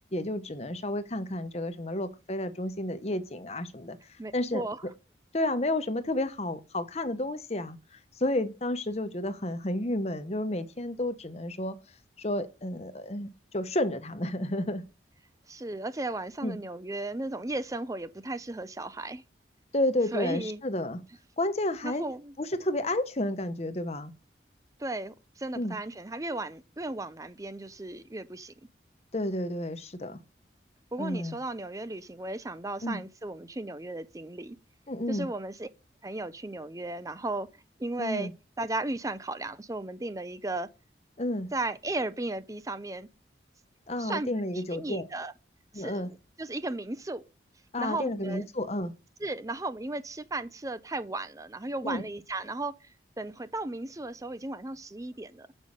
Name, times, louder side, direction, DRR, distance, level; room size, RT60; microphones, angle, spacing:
voice 1, 0.1-4.0 4.3-4.6 5.3-7.8 8.2-11.8 12.2-14.8 16.4-16.6 19.7-21.0 21.4-22.0 22.4-24.1 25.5-25.7 29.1-30.2 31.0-31.4 32.8-33.0 34.9-35.3 38.0-38.3 41.2-41.5 43.9-45.1 45.7-46.1 47.7-48.9 51.8-52.0, left 1 dB, 35° left, 0.9 m, -31 dB
voice 2, 4.2-4.8 15.5-19.2 20.1-20.6 21.8-22.3 24.8-28.5 30.9-34.6 35.1-35.7 36.0-37.5 37.8-38.3 38.6-40.7 41.5-43.1 44.0-44.3 44.5-45.3 45.7-47.2 47.8-48.4 49.2-55.5, right 2 dB, 20° right, 0.6 m, -35 dB
7.1 x 5.5 x 6.4 m
head